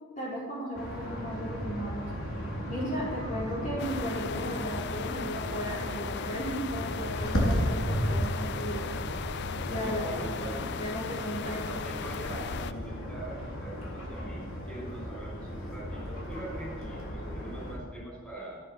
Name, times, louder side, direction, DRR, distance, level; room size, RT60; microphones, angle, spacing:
voice 1, 0.2-2.1 2.7-8.8 9.7-10.0 10.4-11.6 12.0-12.1, equal, 40° left, -6 dB, 4.5 m, -36 dB
sound 1, 0.7-17.8, equal, 85° left, 3.8 m, -35 dB
sound 2, 3.8-12.7, left 7 dB, 55° left, 0.4 m, -38 dB
voice 2, 9.8-10.6 11.4-18.7, right 1 dB, 5° left, -4 dB, 5.7 m, -43 dB
14.0 x 10.5 x 6.5 m, 1.4 s
head